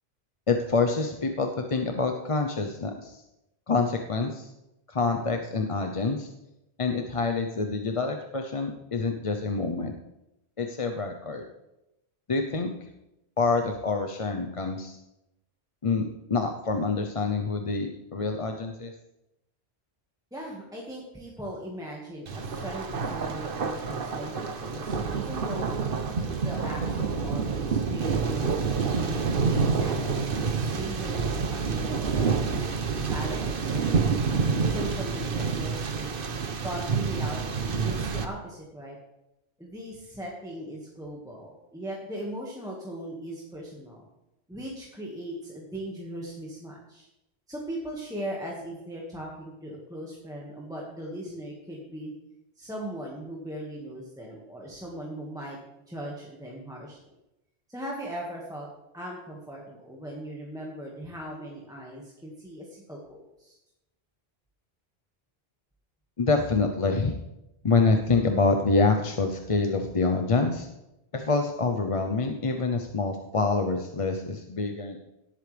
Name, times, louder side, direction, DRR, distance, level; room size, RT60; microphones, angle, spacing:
voice 1, 0.5-3.2 3.7-4.5 4.9-6.3 6.8-9.9 10.6-11.4 12.3-12.9 13.4-15.0 15.8-18.9 66.2-67.1 67.6-70.7 71.1-75.0, left 3 dB, 35° left, 4 dB, 0.7 m, -26 dB
voice 2, 20.3-25.8 26.3-28.5 29.5-30.3 30.5-32.5 33.0-34.2 34.7-39.0 39.6-44.1 44.5-47.1 47.5-52.1 52.6-55.6 55.9-57.0 57.7-58.7 58.9-63.6, equal, 5° right, -3 dB, 1.7 m, -39 dB
Thunder, 22.3-38.3, right 5 dB, 60° right, 1.1 m, -28 dB
18.0 x 8.1 x 3.4 m, 0.90 s
omnidirectional pair, 1.1 m